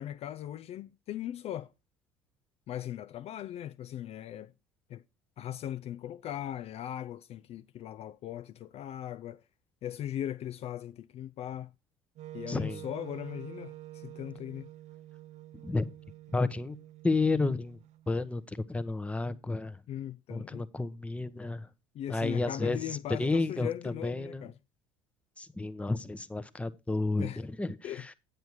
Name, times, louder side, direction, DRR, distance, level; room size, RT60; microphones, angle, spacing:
voice 1, 0.0-1.7 2.7-4.5 4.9-5.0 5.4-9.4 9.8-11.7 12.3-14.7 19.9-20.7 21.9-24.5 27.2-27.4 27.8-28.1, left 11 dB, 40° left, 0.4 m, -39 dB
Wind instrument woodwind instrument, 12.2-18.2, right 14 dB, 45° right, 0.6 m, -48 dB
voice 2, 12.5-12.8 15.6-15.9 16.3-16.8 17.0-17.8 18.1-19.8 20.3-21.7 22.1-24.5 25.4-28.1, left 3 dB, 10° left, 0.8 m, -31 dB
9.3 x 7.9 x 4.6 m
figure-of-eight pair, 65°, 16 cm